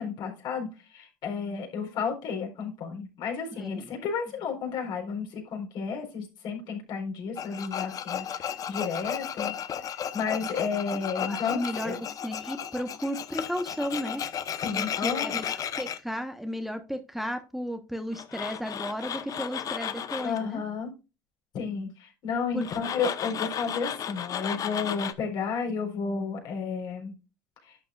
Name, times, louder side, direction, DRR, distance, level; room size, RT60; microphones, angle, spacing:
voice 1, 0.0-9.5 10.1-12.0 14.6-15.3 20.2-20.9 21.5-27.2 27.6-27.8, left 5 dB, 60° left, 2 dB, 4.2 m, -32 dB
voice 2, 3.6-3.9 11.3-14.2 14.7-20.6 22.5-22.7, equal, ahead, 6 dB, 1.2 m, -34 dB
Tools, 7.4-16.0 18.1-20.4 22.6-25.1, left 8 dB, 40° left, 1.0 m, -34 dB
11.0 x 7.6 x 2.4 m, 0.29 s
hypercardioid pair, 85°, 9 cm